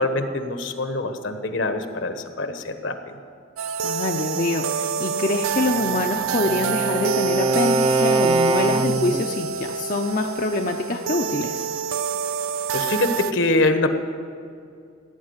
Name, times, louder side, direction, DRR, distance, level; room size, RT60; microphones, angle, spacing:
voice 1, 0.0-3.1 12.7-13.9, left 2 dB, 65° left, 8 dB, 1.2 m, -24 dB
sound 1, 3.6-13.3, right 6 dB, 85° right, 0.4 m, -27 dB
voice 2, 3.8-11.7, left 2 dB, 40° left, 3 dB, 0.6 m, -25 dB
Bowed string instrument, 5.6-9.3, right 3 dB, 25° right, 0.4 m, -23 dB
17.0 x 9.6 x 8.0 m, 2.4 s
head